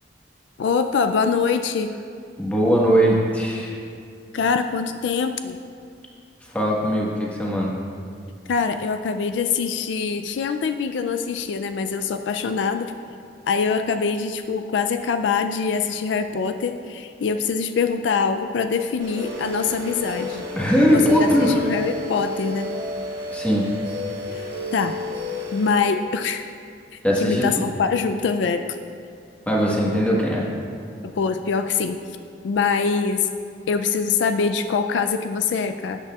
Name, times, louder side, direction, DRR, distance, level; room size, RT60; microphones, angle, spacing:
voice 1, 0.6-1.9 4.3-5.6 8.5-12.9 13.5-20.4 20.9-22.7 24.3-24.4 24.7-24.9 25.5-26.4 27.2-28.6 31.0-32.0 32.4-33.3 33.7-36.0, left 5 dB, 75° left, 8 dB, 0.4 m, -24 dB
voice 2, 2.4-3.8 6.5-7.7 20.6-21.6 23.3-23.7 27.0-27.6 29.5-30.5, equal, 10° left, -4 dB, 1.4 m, -20 dB
sound 1, 19.0-25.9, left 1 dB, 25° right, 2.1 m, -31 dB
13.0 x 8.2 x 2.4 m, 2.3 s
head